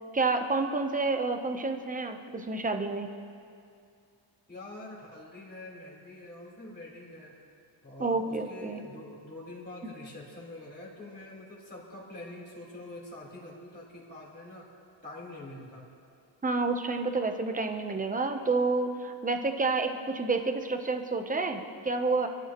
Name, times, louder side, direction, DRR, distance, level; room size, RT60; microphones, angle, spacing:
voice 1, 0.1-3.1 8.0-8.8 16.4-22.3, right 3 dB, 15° right, 5 dB, 0.8 m, -29 dB
voice 2, 4.5-7.4 7.8-14.7 15.0-15.9, left 2 dB, 20° left, -6 dB, 4.1 m, -45 dB
27.0 x 14.0 x 3.1 m, 2.4 s
wide cardioid pair, 175°, 47 cm